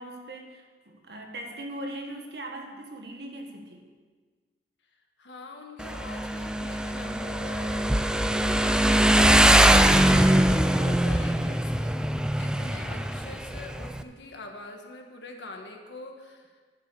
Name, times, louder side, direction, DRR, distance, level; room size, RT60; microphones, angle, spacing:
voice 1, 0.0-3.9, right 1 dB, 65° right, 2 dB, 1.6 m, -40 dB
voice 2, 5.2-8.7 9.0-12.0 12.4-16.6, left 2 dB, 80° left, 3 dB, 1.5 m, -43 dB
Motorcycle, 5.8-14.0, right 1 dB, 5° right, 0.4 m, -22 dB
11.5 x 6.3 x 6.8 m, 1.5 s
head